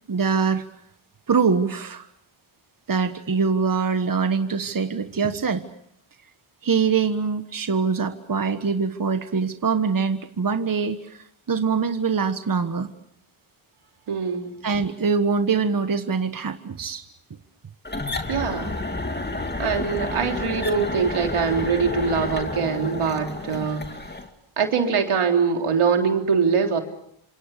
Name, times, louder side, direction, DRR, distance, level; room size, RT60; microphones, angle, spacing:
voice 1, 0.1-0.6 1.3-2.1 2.9-5.6 6.6-12.9 14.6-17.0, right 5 dB, 40° right, 8 dB, 1.5 m, -23 dB
voice 2, 14.1-14.5 18.3-18.8 19.6-23.9 24.6-26.8, right 6 dB, 85° right, 3 dB, 3.6 m, -23 dB
sound 1, 17.8-24.3, left 2 dB, 20° left, 2.5 m, -30 dB
29.0 x 27.0 x 6.7 m, 0.74 s
cardioid pair, 85°, 49 cm